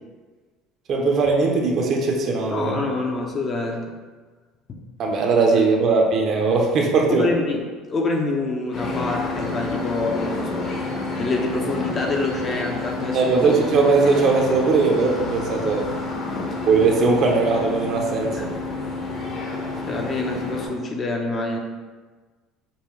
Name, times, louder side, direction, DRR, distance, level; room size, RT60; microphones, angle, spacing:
voice 1, 0.9-2.7 5.0-7.3 13.1-15.9 16.7-18.5, right 4 dB, 45° right, 1 dB, 0.6 m, -19 dB
voice 2, 2.5-3.9 7.1-7.6 7.9-10.7 11.2-13.7 16.3-16.5 18.4-18.5 19.9-21.6, left 3 dB, 30° left, 1 dB, 0.5 m, -26 dB
sound 1, 8.7-20.7, left 2 dB, 45° left, 0.9 m, -29 dB
5.3 x 2.2 x 3.1 m, 1.4 s
cardioid pair, 135°, 0 cm